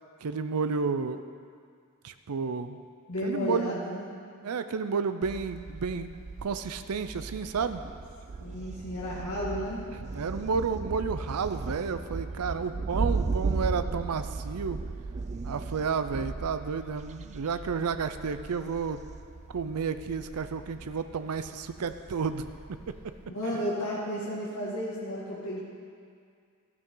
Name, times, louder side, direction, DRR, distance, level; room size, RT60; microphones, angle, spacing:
voice 1, 0.2-1.2 2.0-2.8 3.2-3.8 4.4-7.8 10.1-14.8 15.4-19.0 19.5-22.8, right 5 dB, 85° right, 10 dB, 0.5 m, -31 dB
voice 2, 3.1-4.1 8.4-9.9 23.3-25.6, left 1 dB, 85° left, -7 dB, 2.1 m, -33 dB
Thunder, 5.2-23.3, right 4 dB, 30° right, 0.4 m, -37 dB
14.0 x 12.0 x 3.8 m, 2.2 s
head